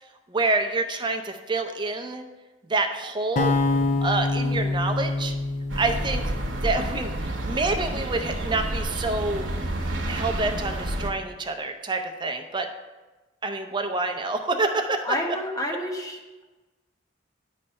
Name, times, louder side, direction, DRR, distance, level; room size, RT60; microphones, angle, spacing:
voice 1, 0.3-2.2 2.7-3.5 4.0-5.3 5.8-6.3 6.6-9.5 10.1-12.7 13.4-15.1, right 3 dB, 25° right, 5 dB, 0.5 m, -27 dB
sound 1, 3.4-7.5, left 3 dB, 40° left, 0.5 m, -26 dB
sound 2, 5.7-11.1, right 1 dB, 80° right, 0.9 m, -29 dB
voice 2, 15.0-16.2, left 1 dB, 20° left, 1 dB, 0.9 m, -29 dB
9.6 x 3.3 x 5.4 m, 1.2 s
head